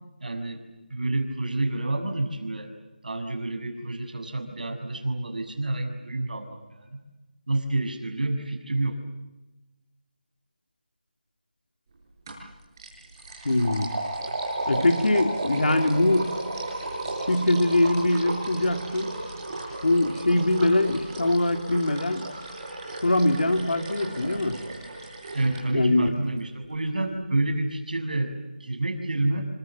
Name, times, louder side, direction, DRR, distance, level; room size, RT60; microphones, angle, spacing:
voice 1, 0.2-0.6 0.9-2.7 3.0-7.0 7.5-9.0 25.3-28.3 28.6-29.5, right 2 dB, 55° right, 5 dB, 6.9 m, -28 dB
sound 1, 12.3-12.5 12.8-25.6, right 2 dB, 20° right, 7.5 m, -34 dB
voice 2, 13.4-13.9 14.7-16.3 17.3-19.1 19.8-22.3 23.0-24.6 25.7-26.1, left 1 dB, 65° left, 7 dB, 3.2 m, -22 dB
28.5 x 25.5 x 7.5 m, 1.1 s
figure-of-eight pair, 175°, 5 cm